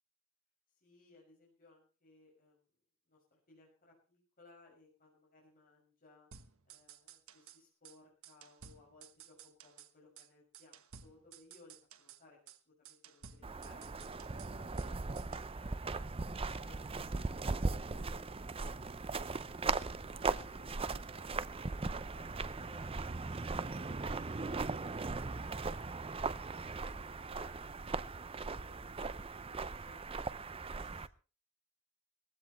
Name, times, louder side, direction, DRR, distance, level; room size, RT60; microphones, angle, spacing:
voice 1, 0.8-2.7 3.1-6.3 6.6-15.0 15.3-18.3 18.7-19.8 20.1-28.2 28.5-30.0 30.4-31.1, left 3 dB, 45° left, -2 dB, 6.4 m, -63 dB
sound 1, 6.3-7.6 7.9-8.0 8.2-9.9 10.2-10.3 10.5-12.2 12.5-12.6 12.9-14.9 15.2-15.5, right 8 dB, 85° right, 1.3 m, -56 dB
sound 2, 13.4-31.1, right 3 dB, 25° right, 0.6 m, -39 dB
20.0 x 16.0 x 3.2 m, 0.35 s
head